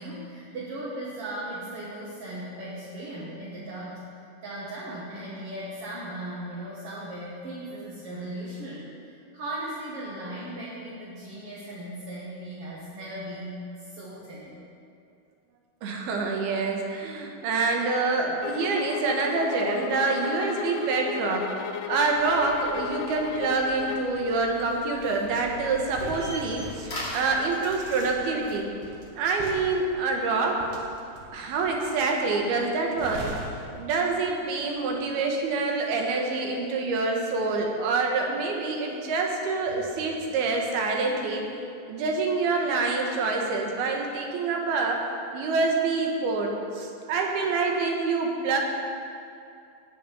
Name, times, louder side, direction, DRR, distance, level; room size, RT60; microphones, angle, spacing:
voice 1, 0.0-4.0 4.4-14.6, right 1 dB, 45° right, -7 dB, 2.4 m, -37 dB
voice 2, 15.8-21.5 21.9-28.7 29.2-30.6 31.3-33.2 33.7-41.4 41.9-45.0 45.3-48.6, right 3 dB, 90° right, 1 dB, 3.5 m, -26 dB
sound 1, 18.4-24.2, left 10 dB, 90° left, 2.5 m, -35 dB
sound 2, 22.2-28.5, left 1 dB, 25° left, 3.4 m, -42 dB
sound 3, 25.2-34.6 34.9-35.2, right 2 dB, 70° right, 3.2 m, -42 dB
18.5 x 6.8 x 7.0 m, 2.5 s
omnidirectional pair, 4.3 m